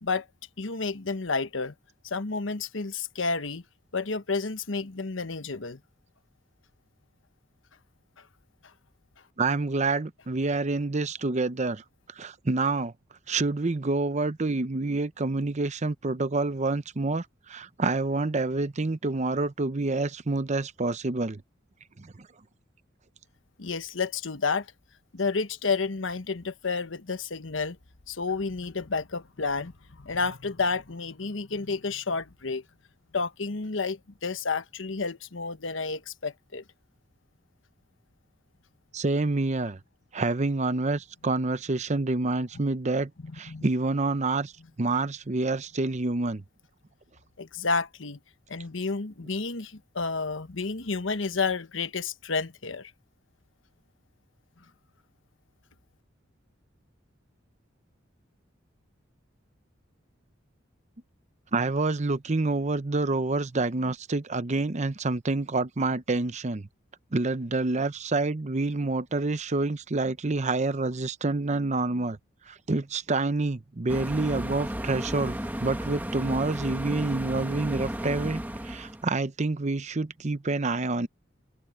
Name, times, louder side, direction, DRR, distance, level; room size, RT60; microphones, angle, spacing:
voice 1, 0.6-1.7 2.0-3.6 3.9-5.8 23.6-24.7 25.1-27.8 28.1-32.6 33.1-36.6 43.2-43.6 47.4-48.2 48.5-52.9, left 4 dB, 75° left, 1.2 m, -30 dB
voice 2, 9.4-11.8 12.2-12.9 13.3-21.4 22.0-22.3 38.9-39.8 40.1-44.5 44.8-46.4 61.5-66.7 67.1-72.2 72.5-81.1, right 3 dB, 35° right, 0.7 m, -28 dB
sound 1, 73.9-79.0, equal, 10° right, 1.7 m, -34 dB
head